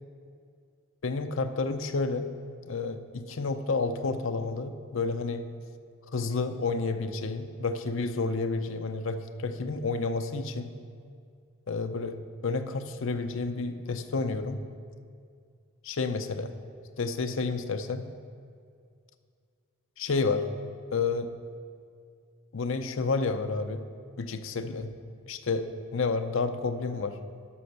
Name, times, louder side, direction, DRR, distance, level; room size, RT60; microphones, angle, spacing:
voice 1, 1.0-2.3 2.7-5.5 6.1-10.7 11.7-12.2 12.4-14.6 15.8-16.5 17.0-18.0 20.0-20.5 20.9-21.3 22.5-23.9 24.2-24.9 25.3-27.2, left 4 dB, 65° left, 8 dB, 0.6 m, -30 dB
12.5 x 5.4 x 6.5 m, 2.2 s
head